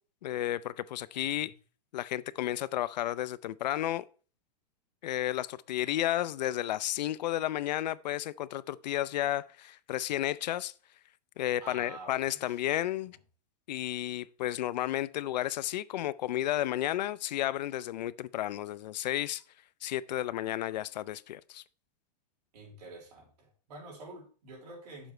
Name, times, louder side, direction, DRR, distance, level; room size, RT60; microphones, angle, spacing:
voice 1, 0.2-1.5 1.9-4.0 5.0-10.7 11.4-13.2 13.7-19.4 19.8-21.6, left 13 dB, 85° left, 0.5 m, -32 dB
voice 2, 1.1-1.5 11.6-12.4 22.5-25.1, right 2 dB, 70° right, 4.0 m, -48 dB
8.9 x 7.1 x 3.2 m
supercardioid pair, 175°, 21 cm